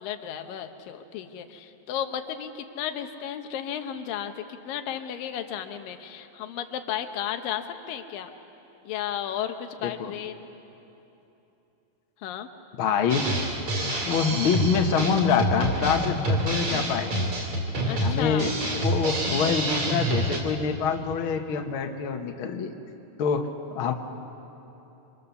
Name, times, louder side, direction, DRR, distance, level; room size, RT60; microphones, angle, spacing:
voice 1, 0.0-8.3 8.8-10.5 12.2-12.5 17.9-18.6, left 9 dB, 85° left, 7 dB, 2.7 m, -34 dB
voice 2, 12.8-13.3 13.8-17.3 18.0-22.7 23.2-23.9, left 6 dB, 60° left, 3 dB, 1.5 m, -26 dB
Drum kit, 13.1-20.4, right 1 dB, 55° right, 4.1 m, -27 dB
25.5 x 25.0 x 7.1 m, 3.0 s
omnidirectional pair, 3.9 m